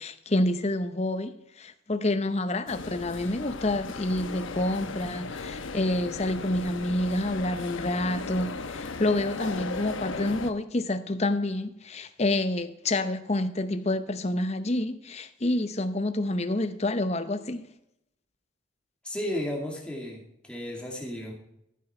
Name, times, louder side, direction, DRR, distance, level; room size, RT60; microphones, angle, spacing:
voice 1, 0.0-17.6, left 1 dB, 30° left, 0.7 m, -28 dB
sound 1, 2.7-10.5, left 3 dB, 75° left, 0.9 m, -36 dB
voice 2, 19.0-21.3, left 1 dB, 5° left, 2.5 m, -34 dB
14.0 x 8.0 x 4.4 m
head